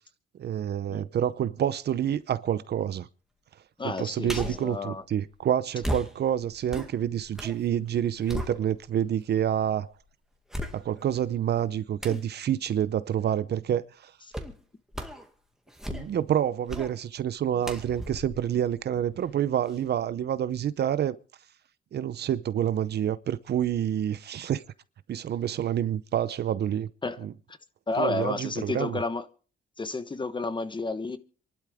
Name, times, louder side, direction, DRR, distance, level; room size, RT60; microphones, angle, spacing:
voice 1, 0.3-3.1 3.8-9.9 10.7-14.1 15.9-21.2 21.9-24.6 25.1-26.9 27.2-27.3 28.0-29.0, right 10 dB, 55° right, 0.7 m, -28 dB
voice 2, 3.8-5.0 27.0-27.2 27.5-27.6 27.9-29.3 29.8-31.2, left 3 dB, 25° left, 1.2 m, -31 dB
sound 1, 4.2-4.7 5.8-7.6 7.9-9.1 9.6-9.7 10.5-11.2 12.0-12.3 14.3-14.6 14.9-15.3 15.7-16.3 16.7-17.0 17.6-19.3 19.7-19.8, equal, ahead, 2.1 m, -36 dB
27.0 x 12.0 x 3.5 m
cardioid pair, 90°, 20 cm